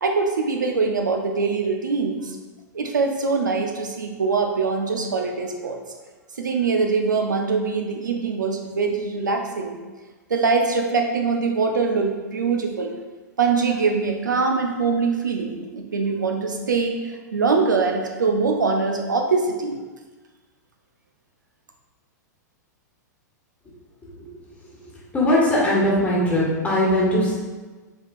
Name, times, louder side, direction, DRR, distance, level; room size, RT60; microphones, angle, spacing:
voice 1, 0.0-2.4 2.7-5.8 6.4-9.8 10.3-12.9 13.4-17.0 17.3-19.8, right 4 dB, 90° right, 3 dB, 0.6 m, -23 dB
voice 2, 25.1-27.3, left 1 dB, 15° left, -6 dB, 1.4 m, -20 dB
5.2 x 3.6 x 2.4 m, 1.3 s
hypercardioid pair, 110°, 10 cm